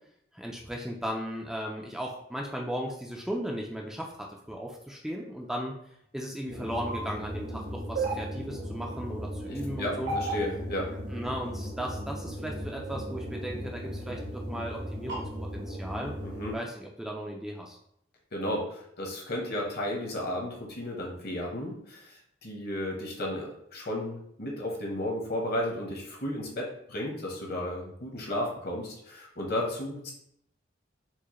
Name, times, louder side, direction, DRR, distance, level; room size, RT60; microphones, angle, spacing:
voice 1, 0.3-5.7 6.1-10.1 11.1-15.2 15.5-16.1 16.5-17.8, equal, 5° right, -1 dB, 0.3 m, -36 dB
sound 1, 6.5-16.6, right 1 dB, 65° right, 0.8 m, -36 dB
voice 2, 9.5-10.9 16.2-16.5 18.3-22.1 22.4-30.1, left 1 dB, 55° left, -1 dB, 0.9 m, -33 dB
4.5 x 2.1 x 3.0 m, 0.72 s
head